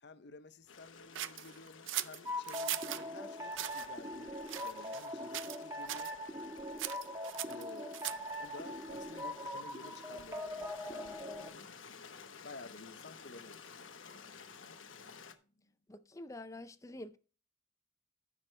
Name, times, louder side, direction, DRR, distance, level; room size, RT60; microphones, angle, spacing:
voice 1, 0.0-4.3 4.6-6.1 7.4-11.8 12.4-13.8 15.0-15.2 15.4-15.7, left 3 dB, 60° left, 0.7 m, -53 dB
Stream, 0.7-15.3, left 6 dB, 85° left, 1.1 m, -54 dB
sound 1, 1.1-3.0 3.5-3.9 4.5-5.1 5.3-5.6 5.9-6.1 6.8-8.4, right 13 dB, 80° right, 0.5 m, -40 dB
sound 2, 2.2-11.5, left 1 dB, 15° right, 1.2 m, -42 dB
voice 2, 15.9-17.2, left 1 dB, 15° left, 0.5 m, -47 dB
14.0 x 6.2 x 3.3 m
head